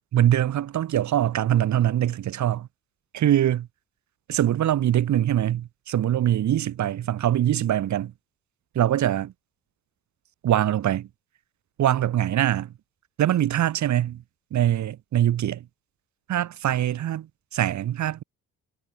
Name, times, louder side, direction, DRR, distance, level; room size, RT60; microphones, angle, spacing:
voice 1, 0.1-2.7 3.1-3.7 4.3-8.1 8.7-9.3 10.4-11.1 11.8-12.7 13.2-14.2 14.5-15.6 16.3-17.3 17.5-18.2, right 11 dB, 70° right, 2.5 m, -23 dB
cardioid pair, 90°, 30 cm